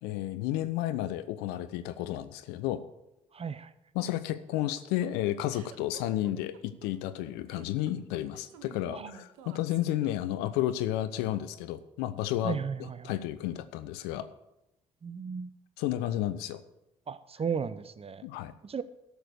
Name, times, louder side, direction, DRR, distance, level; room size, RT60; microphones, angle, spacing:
voice 1, 0.0-2.8 3.9-12.6 13.0-14.3 15.8-16.6 18.2-18.5, left 13 dB, 80° left, 13 dB, 0.6 m, -32 dB
voice 2, 3.3-3.7 8.9-9.1 12.4-13.2 15.0-15.5 17.1-18.3 18.6-18.8, right 6 dB, 35° right, 15 dB, 0.7 m, -35 dB
sound 1, 4.3-10.6, right 8 dB, 85° right, 0.8 m, -51 dB
12.5 x 6.8 x 6.4 m, 0.92 s
hypercardioid pair, 45°, 17 cm